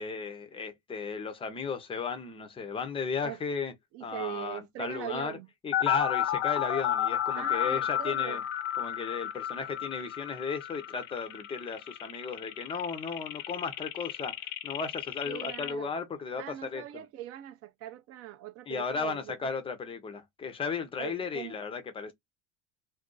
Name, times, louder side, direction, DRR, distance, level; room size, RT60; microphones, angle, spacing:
voice 1, 0.0-3.7 4.0-5.3 5.6-8.4 8.7-14.4 14.6-17.0 18.7-22.1, left 5 dB, 15° left, 0.5 m, -35 dB
voice 2, 3.9-5.5 7.3-8.4 15.3-15.9 16.4-19.3 21.0-21.6, right 13 dB, 40° right, 0.4 m, -41 dB
sound 1, 5.7-15.7, left 11 dB, 65° left, 0.6 m, -32 dB
2.4 x 2.3 x 3.7 m
supercardioid pair, 135°, 39 cm